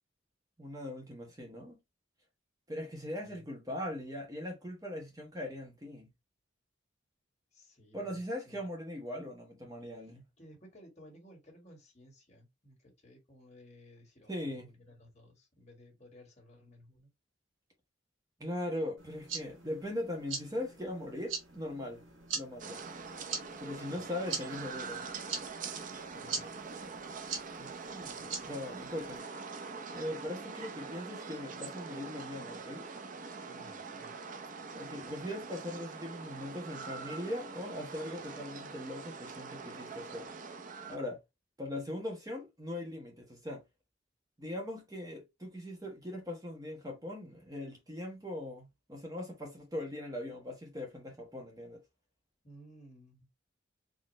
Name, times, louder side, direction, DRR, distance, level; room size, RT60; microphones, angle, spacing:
voice 1, 0.6-1.8 2.7-6.1 7.9-10.3 14.3-14.7 18.4-22.0 22.3-22.8 23.6-25.0 27.6-29.2 29.9-32.9 34.8-40.3 40.9-41.2 41.6-43.6 44.4-51.8, left 1 dB, 20° right, 1.2 m, -40 dB
voice 2, 7.5-8.2 8.5-8.6 10.1-17.1 23.9-24.0 26.1-26.5 33.5-34.2 52.4-53.3, equal, 35° left, 1.9 m, -57 dB
sound 1, 19.0-29.2, right 5 dB, 80° right, 1.7 m, -43 dB
sound 2, 22.6-41.0, right 4 dB, 40° right, 0.6 m, -44 dB
4.2 x 3.0 x 3.1 m
head